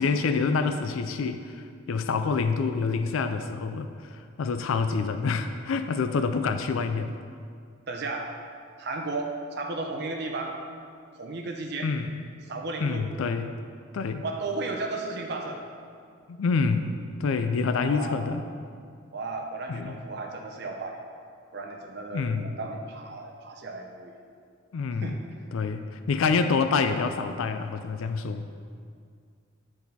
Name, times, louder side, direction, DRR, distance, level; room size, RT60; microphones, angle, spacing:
voice 1, 0.0-7.2 11.8-12.2 12.8-13.5 13.9-14.2 16.3-18.4 19.7-20.0 22.1-22.6 24.7-25.2 25.5-28.5, left 4 dB, 80° left, 9 dB, 0.4 m, -27 dB
voice 2, 7.9-8.3 8.8-10.6 11.2-11.9 12.5-13.1 14.2-15.6 17.8-18.3 19.1-21.0 21.5-24.1 25.0-25.2, right 3 dB, 55° right, 2 dB, 0.6 m, -34 dB
10.5 x 4.1 x 4.1 m, 2.2 s
head